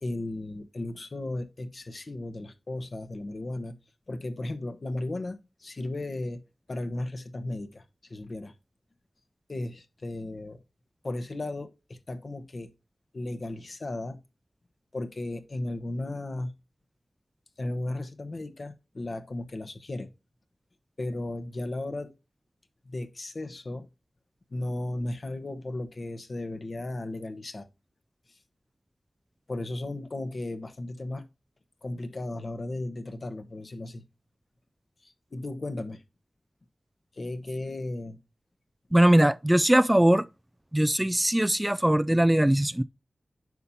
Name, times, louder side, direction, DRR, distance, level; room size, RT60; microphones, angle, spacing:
voice 1, 0.0-3.7 4.1-6.4 6.7-8.5 9.5-10.6 11.0-12.7 13.1-14.2 14.9-16.5 17.6-20.1 21.0-22.1 22.8-23.9 24.5-27.7 28.3-28.4 29.5-31.2 31.8-34.0 35.0-36.0 37.1-38.2, left 2 dB, 60° left, 1.0 m, -35 dB
voice 2, 38.9-40.3 40.7-42.8, right 1 dB, 15° right, 0.3 m, -21 dB
9.3 x 5.6 x 2.7 m
cardioid pair, 40°, 0 cm